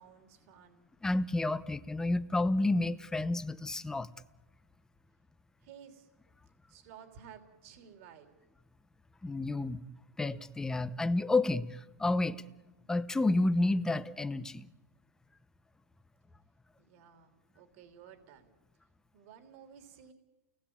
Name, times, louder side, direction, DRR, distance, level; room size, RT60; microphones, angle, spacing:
voice 1, 0.0-0.9 5.6-6.1 6.7-8.3 16.8-18.5 19.1-20.1, right 8 dB, 55° right, 6 dB, 3.2 m, -54 dB
voice 2, 1.0-4.1 9.2-9.8 10.2-12.4 12.9-14.7, left 2 dB, 5° left, 12 dB, 0.8 m, -30 dB
29.0 x 19.0 x 8.7 m, 1.2 s
hypercardioid pair, 135°, 9 cm